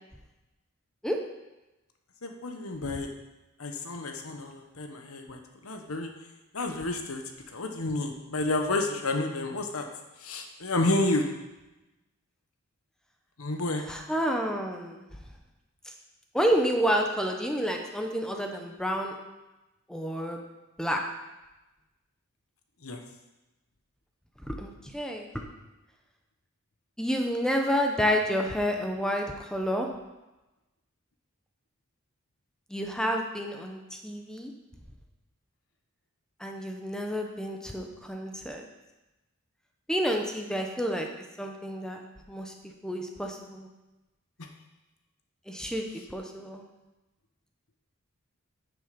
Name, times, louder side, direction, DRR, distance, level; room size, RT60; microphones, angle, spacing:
voice 1, 2.2-3.1 3.6-6.1 6.5-7.2 7.5-9.9 10.2-11.3 13.4-13.8 22.8-23.0, left 2 dB, 80° left, 4 dB, 1.3 m, -30 dB
voice 2, 13.9-15.0 16.3-19.1 19.9-20.4 20.8-21.0 24.5-25.3 27.0-29.9 32.7-34.5 36.4-38.6 39.9-41.1 41.4-42.0 42.3-42.5 42.8-43.7 45.5-46.6, equal, 5° left, 2 dB, 0.9 m, -29 dB
10.0 x 6.9 x 5.2 m, 1.0 s
head